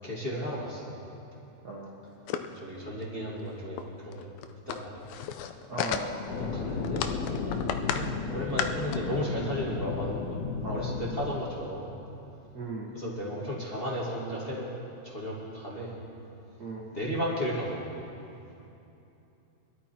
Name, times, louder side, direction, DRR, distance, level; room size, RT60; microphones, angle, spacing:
voice 1, 0.0-1.0 2.5-4.3 4.7-5.1 6.5-7.1 7.9-10.2 10.7-11.9 12.9-14.7 15.0-15.9 16.9-18.0, equal, 25° left, -5 dB, 1.5 m, -34 dB
sound 1, 2.3-2.6 3.0-3.1 3.4-3.5 3.8-3.9 4.1-6.4 6.8-8.1 8.4-9.0, left 8 dB, 85° left, 1.5 m, -33 dB
voice 2, 5.7-6.3 10.6-11.0 12.5-12.9 16.6-16.9, right 2 dB, 90° right, -4 dB, 0.8 m, -37 dB
sound 2, 6.3-11.4, left 4 dB, 70° left, 2.9 m, -34 dB
20.5 x 12.5 x 4.4 m, 2.8 s
omnidirectional pair, 3.9 m